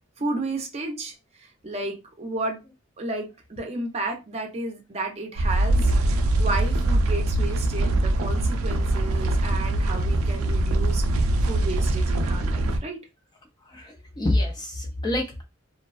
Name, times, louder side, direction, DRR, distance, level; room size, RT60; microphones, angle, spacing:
voice 1, 0.2-2.6 3.0-13.0, right 2 dB, 30° right, 0.5 m, -33 dB
sound 1, 5.4-12.8, right 1 dB, 85° right, 0.4 m, -23 dB
voice 2, 13.6-15.4, left 1 dB, 20° left, 0.4 m, -27 dB
2.5 x 2.1 x 2.3 m
head